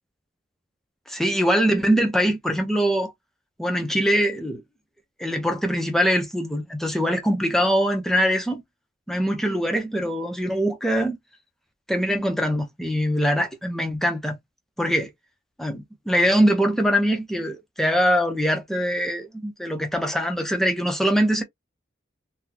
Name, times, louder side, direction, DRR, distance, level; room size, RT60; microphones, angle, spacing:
voice 1, 1.1-3.1 3.6-4.6 5.2-8.6 9.1-11.2 11.9-14.4 14.8-15.1 15.6-21.4, equal, ahead, 0.7 m, -23 dB
4.0 x 2.3 x 2.8 m
head